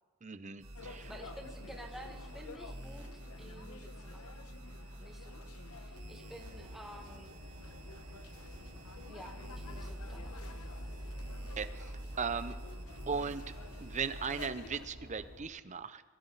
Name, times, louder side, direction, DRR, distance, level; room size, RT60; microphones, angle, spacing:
voice 1, 0.2-1.1 11.6-11.9 12.2-12.5 13.1-13.4 13.8-16.0, right 5 dB, 35° right, 12 dB, 0.7 m, -37 dB
sound 1, 0.6-14.4, equal, 65° right, 4.5 m, -47 dB
sound 2, 0.7-14.9, left 4 dB, 90° left, 1.0 m, -52 dB
voice 2, 1.1-3.1 3.4-4.4 5.0-7.3 9.1-10.4, equal, ahead, 1 dB, 1.6 m, -51 dB
sound 3, 6.3-15.5, right 1 dB, 90° right, 2.7 m, -52 dB
22.0 x 15.0 x 4.0 m, 1.4 s
head